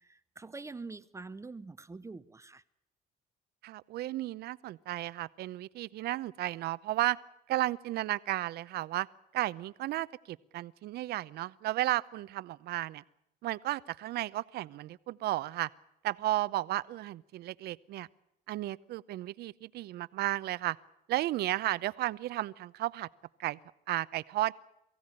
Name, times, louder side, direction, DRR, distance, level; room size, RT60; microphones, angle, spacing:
voice 1, 0.0-2.6, right 3 dB, 15° right, 14 dB, 0.8 m, -45 dB
voice 2, 3.6-7.2 7.5-9.1 9.3-13.0 13.4-15.7 16.0-18.1 18.5-20.8 21.1-23.1 23.4-23.6 23.9-24.5, right 15 dB, 70° right, 17 dB, 0.8 m, -33 dB
23.0 x 16.0 x 9.9 m, 0.82 s
cardioid pair, 110°, 17 cm